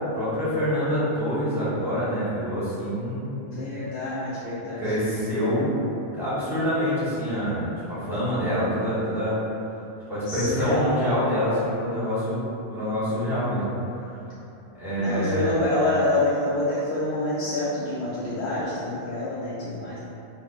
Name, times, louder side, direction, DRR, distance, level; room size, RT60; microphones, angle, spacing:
voice 1, 0.1-3.7 4.8-5.7 6.1-9.4 10.1-13.7 14.0-14.2 14.8-15.5, equal, ahead, -12 dB, 1.3 m, -26 dB
voice 2, 3.5-4.9 5.2-5.6 10.3-11.1 13.1-13.5 15.0-20.0, left 1 dB, 85° left, -8 dB, 0.9 m, -27 dB
5.0 x 2.6 x 2.3 m, 2.8 s
omnidirectional pair, 1.1 m